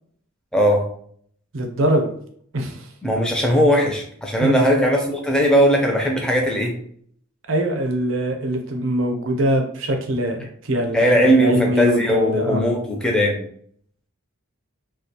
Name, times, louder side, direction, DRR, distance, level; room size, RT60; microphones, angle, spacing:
voice 1, 0.5-0.8 3.0-6.8 10.9-13.4, equal, 5° left, 0 dB, 0.4 m, -18 dB
voice 2, 1.5-2.1 2.5-2.9 4.4-4.6 7.5-12.6, equal, 60° right, 3 dB, 0.5 m, -23 dB
2.3 x 2.2 x 2.7 m, 0.62 s
head